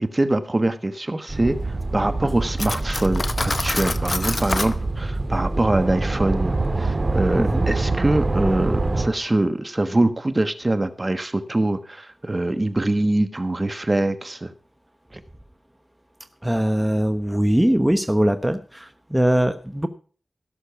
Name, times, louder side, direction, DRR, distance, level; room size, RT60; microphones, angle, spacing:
voice 1, 0.0-1.6 1.9-14.5, right 2 dB, 35° right, 11 dB, 1.3 m, -23 dB
sound 1, 1.3-9.1, right 2 dB, 50° right, 2.7 m, -25 dB
Cutlery silverware, 2.6-4.8, left 3 dB, 50° left, 0.8 m, -27 dB
voice 2, 7.4-7.7 16.4-19.9, right 1 dB, 10° right, 10 dB, 1.0 m, -21 dB
16.5 x 6.7 x 5.8 m, 0.41 s
cardioid pair, 40°, 0 cm